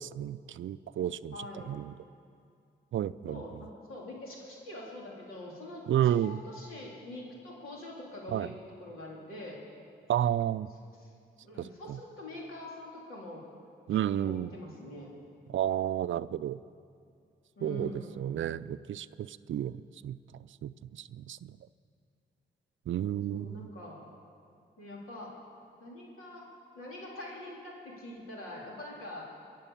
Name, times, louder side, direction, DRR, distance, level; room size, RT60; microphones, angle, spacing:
voice 1, 0.0-1.4 1.7-1.9 2.9-3.4 5.9-6.4 8.3-8.5 10.1-10.7 11.6-12.0 13.9-14.5 15.5-16.6 17.6-20.2 20.6-21.6 22.9-23.7, right 11 dB, 65° right, 15 dB, 0.4 m, -31 dB
voice 2, 1.3-1.8 3.3-9.6 11.0-11.1 11.4-13.4 13.9-15.2 17.6-18.3 23.3-24.1 24.8-25.3 25.8-26.5 26.7-29.3, left 1 dB, 80° left, -3 dB, 3.5 m, -44 dB
23.0 x 7.6 x 7.1 m, 2.3 s
supercardioid pair, 50°, 21 cm